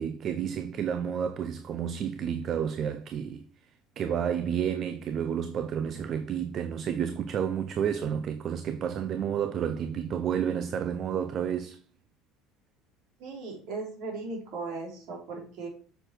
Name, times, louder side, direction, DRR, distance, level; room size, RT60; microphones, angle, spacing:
voice 1, 0.0-3.4 4.0-11.8, right 8 dB, 50° right, 0.8 m, -30 dB
voice 2, 13.2-15.7, right 3 dB, 65° right, 4.0 m, -37 dB
7.7 x 6.7 x 4.6 m
hypercardioid pair, 75°, 0 cm